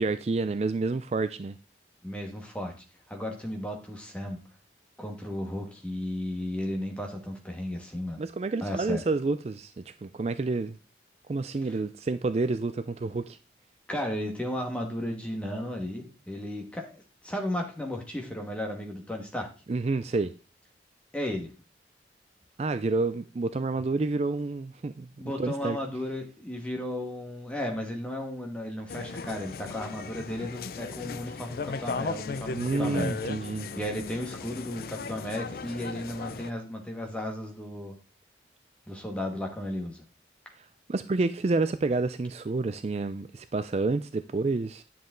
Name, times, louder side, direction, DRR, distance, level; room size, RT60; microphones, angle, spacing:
voice 1, 0.0-1.6 8.2-10.8 11.3-13.4 19.7-20.3 22.6-25.1 25.4-25.8 32.5-33.7 40.6-44.8, right 3 dB, 35° right, 0.4 m, -29 dB
voice 2, 2.0-2.7 3.1-4.4 5.0-8.2 8.6-9.0 13.9-19.5 21.1-21.5 25.2-33.1 33.7-38.0 38.9-40.0, left 1 dB, 5° left, 1.7 m, -34 dB
sound 1, 28.9-36.5, left 4 dB, 55° left, 0.4 m, -36 dB
10.0 x 7.3 x 3.8 m
head